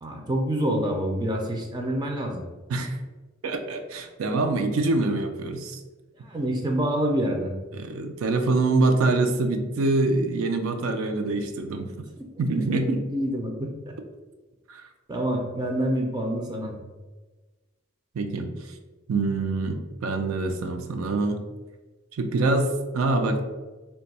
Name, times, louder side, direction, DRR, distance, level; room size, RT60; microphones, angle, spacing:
voice 1, 0.0-2.4 6.2-7.6 13.1-13.7 15.1-16.7, right 1 dB, 20° right, 1 dB, 0.4 m, -27 dB
voice 2, 3.4-5.8 7.7-11.9 12.4-13.0 14.7-14.9 18.1-18.7 19.1-21.4 22.2-23.4, right 2 dB, 85° right, 6 dB, 0.4 m, -25 dB
2.6 x 2.2 x 4.0 m, 1.2 s
head